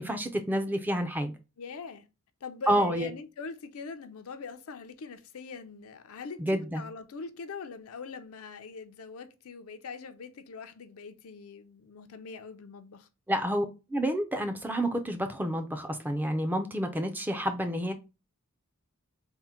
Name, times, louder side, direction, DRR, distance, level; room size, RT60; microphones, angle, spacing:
voice 1, 0.0-1.3 2.7-3.1 6.4-6.8 13.3-13.7 13.9-17.9, equal, 10° right, 0.4 m, -29 dB
voice 2, 1.6-2.1 2.4-6.4 6.7-13.1, left 5 dB, 70° left, 0.5 m, -42 dB
3.6 x 2.1 x 4.1 m
head